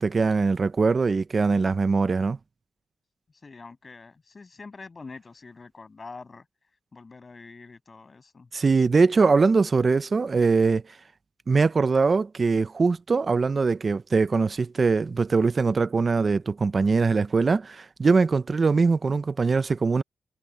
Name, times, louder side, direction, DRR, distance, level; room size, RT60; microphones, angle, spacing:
voice 1, 0.0-2.4 8.5-10.8 11.5-20.0, right 4 dB, 35° right, 0.5 m, -22 dB
voice 2, 3.3-6.5 6.9-8.5, left 4 dB, 30° left, 7.5 m, -45 dB
wide cardioid pair, 125°, 0 cm